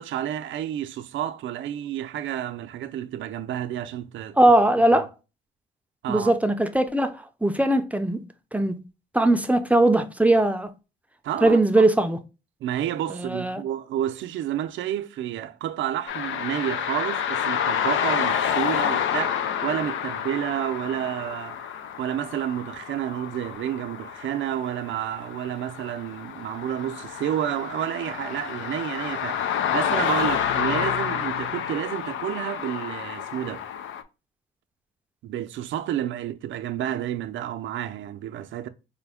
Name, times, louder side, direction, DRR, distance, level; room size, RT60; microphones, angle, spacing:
voice 1, 0.0-4.4 4.9-5.1 6.0-6.3 11.2-11.9 12.6-33.6 35.2-38.7, right 11 dB, 75° right, 0.6 m, -30 dB
voice 2, 4.4-5.1 6.1-7.1 7.4-8.2 8.5-8.8 9.1-10.7 11.4-12.2 13.2-13.6, right 1 dB, 5° right, 0.5 m, -20 dB
sound 1, 16.1-34.0, left 8 dB, 80° left, 0.6 m, -29 dB
5.1 x 2.2 x 3.4 m
cardioid pair, 90°, 20 cm